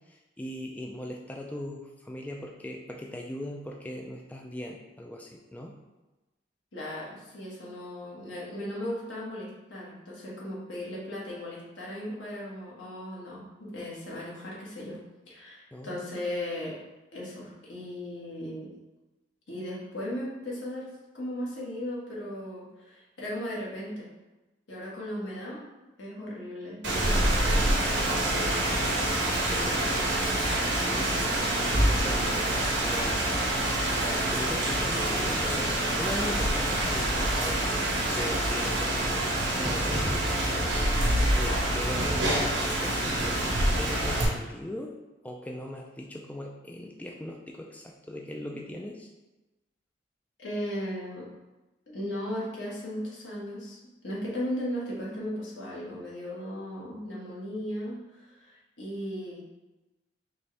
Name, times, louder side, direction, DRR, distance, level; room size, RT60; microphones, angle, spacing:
voice 1, 0.0-5.8 15.7-16.1 29.5-30.0 30.8-33.5 34.0-37.7 38.1-40.2 41.3-44.9 45.2-49.1, left 1 dB, 10° left, 0 dB, 0.3 m, -39 dB
voice 2, 6.7-15.0 15.3-16.8 17.1-18.7 19.5-20.9 21.1-24.1 24.7-25.7 26.0-27.7 50.4-51.3 51.9-53.8 54.0-59.4, left 1 dB, 75° left, -5 dB, 1.4 m, -36 dB
Rain, 26.8-44.2, right 1 dB, 80° right, 1.0 m, -26 dB
4.4 x 3.0 x 3.2 m, 1.1 s
head